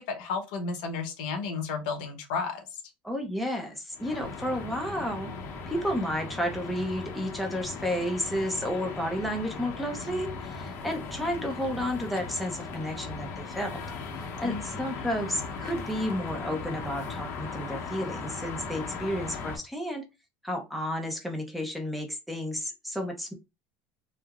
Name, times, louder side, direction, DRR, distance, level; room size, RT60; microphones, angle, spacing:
voice 1, 0.0-2.6 14.4-14.8, left 5 dB, 90° left, 5 dB, 0.8 m, -33 dB
voice 2, 3.0-5.3 5.7-13.8 14.4-20.1 20.4-23.3, equal, ahead, 1 dB, 0.6 m, -32 dB
sound 1, 3.9-19.6, left 4 dB, 55° left, 0.6 m, -38 dB
3.3 x 2.0 x 2.3 m, 0.25 s
cardioid pair, 135°, 5 cm